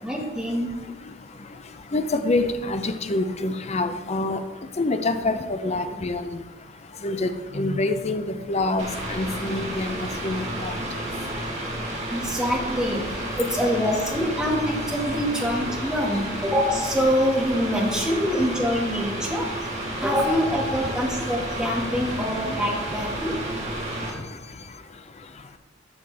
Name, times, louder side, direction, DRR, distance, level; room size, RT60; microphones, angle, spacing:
voice 1, 0.0-0.8 12.1-19.5 20.0-23.4, equal, 5° right, -3 dB, 1.9 m, -25 dB
voice 2, 1.9-4.4 4.8-6.2 7.0-7.3 7.5-10.7, left 2 dB, 35° left, 9 dB, 0.6 m, -26 dB
Mechanical fan, 8.8-24.1, right 1 dB, 35° right, 2.0 m, -31 dB
12.0 x 6.9 x 3.4 m, 1.2 s
head